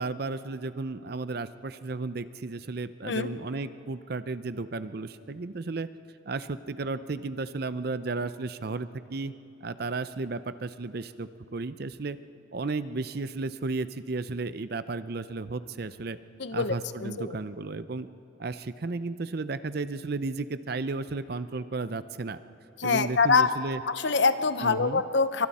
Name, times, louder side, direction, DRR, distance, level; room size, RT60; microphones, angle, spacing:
voice 1, 0.0-5.9 6.3-9.3 9.6-12.2 12.5-16.2 16.5-18.1 18.4-22.4 22.8-23.8 24.6-25.0, right 3 dB, 50° right, 13 dB, 0.6 m, -33 dB
voice 2, 16.4-16.7 17.0-17.4 22.8-23.5 23.9-25.5, left 4 dB, 60° left, 11 dB, 0.8 m, -24 dB
29.0 x 24.0 x 4.3 m, 2.8 s
head